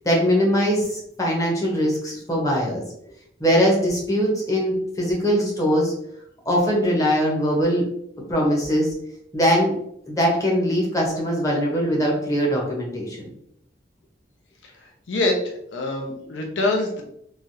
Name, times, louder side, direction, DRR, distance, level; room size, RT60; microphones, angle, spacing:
voice 1, 0.0-2.8 3.4-5.9 6.5-7.8 8.2-8.9 9.3-9.8 10.1-13.3, equal, 20° left, -3 dB, 0.8 m, -21 dB
voice 2, 15.7-17.0, left 2 dB, 90° left, 2 dB, 0.5 m, -24 dB
3.2 x 2.3 x 2.7 m, 0.72 s
head